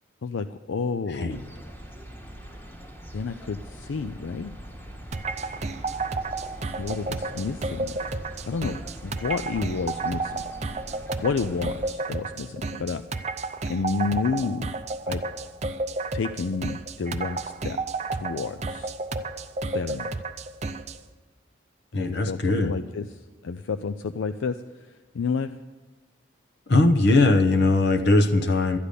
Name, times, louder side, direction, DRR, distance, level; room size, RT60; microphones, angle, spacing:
voice 1, 0.2-1.4 3.1-4.5 6.8-8.0 8.5-10.4 11.2-13.0 13.6-14.7 15.1-15.2 16.1-17.8 18.1-18.9 19.7-20.1 21.9-25.5, left 5 dB, 75° left, 10 dB, 0.4 m, -30 dB
sound 1, 1.3-11.9, equal, 10° left, 1.4 m, -42 dB
sound 2, 5.1-21.0, right 3 dB, 35° right, 0.5 m, -32 dB
voice 2, 21.9-22.8 26.7-28.8, left 2 dB, 55° left, 6 dB, 0.8 m, -20 dB
12.5 x 10.0 x 6.8 m, 1.3 s
head